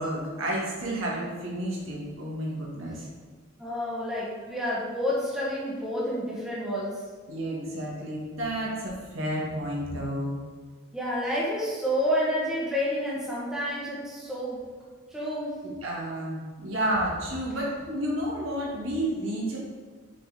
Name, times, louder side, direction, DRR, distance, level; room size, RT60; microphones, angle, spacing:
voice 1, 0.0-3.1 7.3-10.4 15.6-19.6, right 1 dB, 80° right, -4 dB, 1.9 m, -31 dB
voice 2, 3.6-7.0 10.9-14.6 15.1-15.5, equal, 5° right, -7 dB, 1.3 m, -29 dB
6.5 x 4.2 x 5.0 m, 1.5 s
head